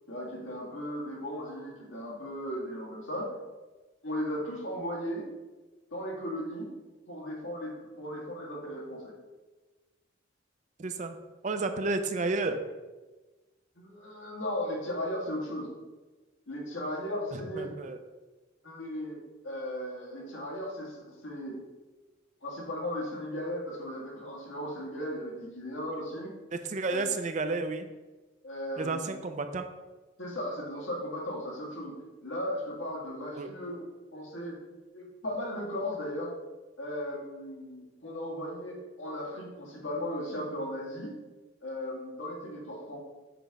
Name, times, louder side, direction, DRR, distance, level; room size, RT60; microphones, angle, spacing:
voice 1, 0.1-3.3 4.0-5.3 5.9-6.7 7.1-9.1 13.7-15.7 16.5-17.7 18.6-21.6 22.4-26.3 26.9-27.0 28.4-29.1 30.2-34.6 34.9-36.3 36.8-41.1 41.6-43.0, equal, 85° left, -2 dB, 1.8 m, -36 dB
voice 2, 10.8-11.2 11.4-12.6 17.6-18.0 26.5-27.9 28.8-29.6 33.4-33.5, right 3 dB, 40° right, 8 dB, 0.4 m, -31 dB
5.8 x 3.5 x 5.2 m, 1.2 s
head